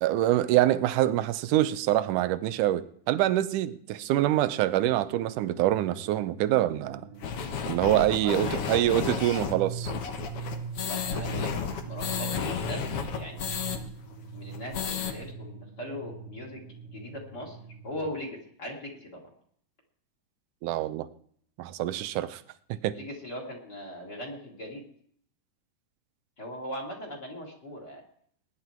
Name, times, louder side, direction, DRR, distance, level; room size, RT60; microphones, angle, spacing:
voice 1, 0.0-7.1 7.7-9.9 20.6-21.1 21.6-22.4 22.7-23.0, right 14 dB, 75° right, 14 dB, 2.2 m, -25 dB
sound 1, 5.3-18.1, right 5 dB, 60° right, 1.8 m, -42 dB
sound 2, 7.2-13.8 14.1-14.2 14.5-15.1, left 7 dB, 55° left, 1.8 m, -32 dB
voice 2, 8.2-8.6 10.8-11.5 11.8-12.8 13.1-13.6 14.3-16.6 16.9-17.6 17.8-19.2 22.9-24.8 26.4-28.0, equal, 30° left, 1 dB, 3.2 m, -39 dB
20.5 x 10.5 x 4.6 m, 0.64 s
omnidirectional pair, 3.8 m